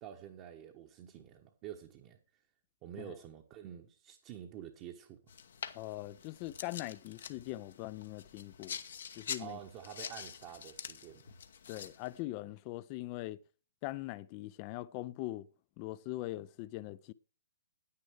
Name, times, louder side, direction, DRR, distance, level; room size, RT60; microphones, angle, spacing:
voice 1, 0.0-2.2 2.8-5.2 9.4-11.3, right 10 dB, 30° right, 1.0 m, -48 dB
sound 1, 5.3-12.2, left 7 dB, 60° left, 0.9 m, -46 dB
voice 2, 5.7-8.8 9.1-9.6 11.7-13.4 13.8-15.5 15.8-17.1, left 17 dB, 30° left, 0.4 m, -41 dB
9.8 x 9.7 x 4.6 m
figure-of-eight pair, 125°, 0 cm